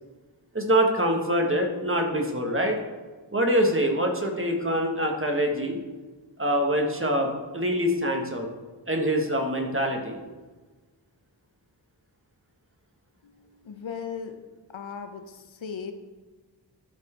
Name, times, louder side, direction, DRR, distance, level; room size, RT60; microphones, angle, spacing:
voice 1, 0.5-2.8 3.3-5.8 6.4-8.5 8.9-10.2, equal, 30° right, 2 dB, 1.5 m, -25 dB
voice 2, 13.2-14.4 14.7-15.9, left 6 dB, 85° left, 7 dB, 0.9 m, -37 dB
12.5 x 4.5 x 4.5 m, 1.3 s
wide cardioid pair, 65°, 45 cm